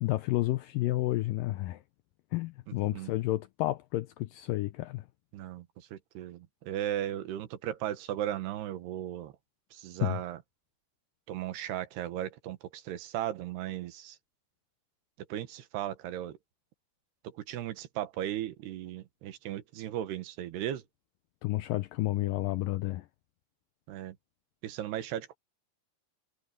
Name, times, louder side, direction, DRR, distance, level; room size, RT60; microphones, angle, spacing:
voice 1, 0.0-1.8 2.3-5.1 10.0-10.2 21.4-23.1, left 17 dB, 85° left, 2.0 m, -31 dB
voice 2, 2.7-3.1 5.3-9.3 9.7-10.4 11.3-14.2 15.3-16.4 17.3-20.8 23.9-24.2 24.6-25.4, right 12 dB, 85° right, 3.5 m, -36 dB
omnidirectional pair, 4.5 m